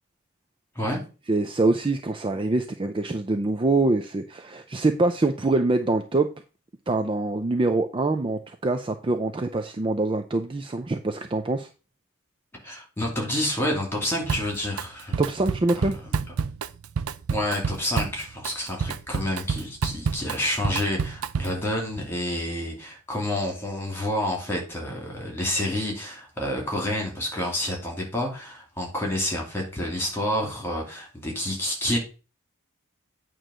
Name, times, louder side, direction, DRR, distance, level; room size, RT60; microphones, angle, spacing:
voice 1, 1.3-6.3 6.9-11.7 15.2-16.0, right 2 dB, 25° right, 7 dB, 0.4 m, -24 dB
voice 2, 12.6-15.1 17.3-32.0, left 1 dB, 10° left, 0 dB, 2.5 m, -29 dB
Drum kit, 14.3-14.9 15.1-21.7, right 5 dB, 90° right, 0.5 m, -29 dB
8.9 x 3.1 x 6.3 m, 0.34 s
head